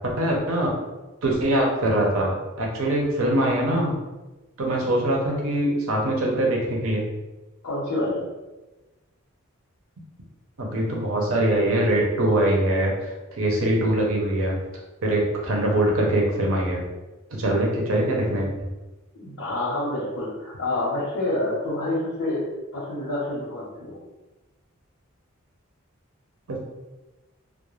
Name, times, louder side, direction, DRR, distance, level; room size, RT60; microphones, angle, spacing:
voice 1, 0.0-0.7 1.2-4.0 4.6-7.1 10.6-14.6 15.0-16.8 17.3-18.5 26.5-26.6, right 1 dB, 70° right, -1 dB, 0.6 m, -23 dB
voice 2, 7.6-8.2 19.1-24.0, left 1 dB, 75° left, -7 dB, 0.8 m, -28 dB
2.3 x 2.1 x 3.1 m, 1.1 s
head